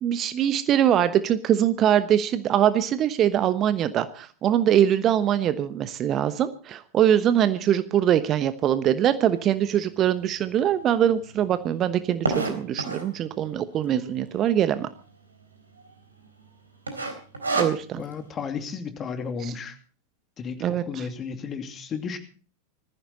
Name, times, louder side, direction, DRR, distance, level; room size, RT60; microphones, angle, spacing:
voice 1, 0.0-14.9 17.5-18.0 19.4-19.5 20.6-21.1, right 10 dB, 30° right, 13 dB, 1.1 m, -23 dB
sound 1, 9.7-9.8 10.4-10.5 10.7-10.8 11.1-13.2 13.8-14.3 14.6-14.7 14.9-15.0 15.5-15.9 16.2-16.5 16.9-18.1, right 3 dB, 75° right, 3.9 m, -28 dB
voice 2, 18.0-19.8 20.4-22.2, left 6 dB, 25° left, 7 dB, 2.6 m, -33 dB
20.0 x 15.0 x 4.1 m, 0.38 s
figure-of-eight pair, 90°, 0 cm